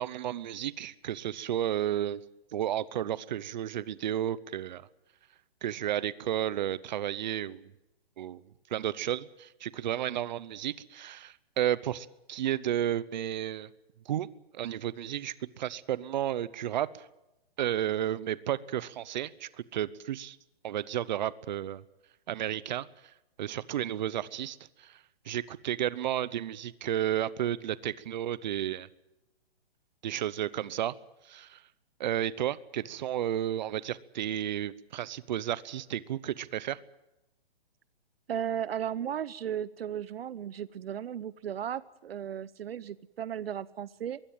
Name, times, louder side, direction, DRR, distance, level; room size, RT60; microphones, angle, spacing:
voice 1, 0.0-2.2 2.5-4.9 5.6-7.7 8.2-8.4 8.7-13.7 14.1-14.3 14.5-17.1 17.6-20.4 20.6-21.8 22.3-22.9 23.4-24.9 25.3-28.9 30.0-30.9 31.3-31.6 32.0-36.8, right 11 dB, 45° right, 19 dB, 0.9 m, -32 dB
voice 2, 38.3-44.2, right 9 dB, 75° right, 19 dB, 0.7 m, -35 dB
22.5 x 16.0 x 9.1 m, 0.92 s
hypercardioid pair, 155°, 30 cm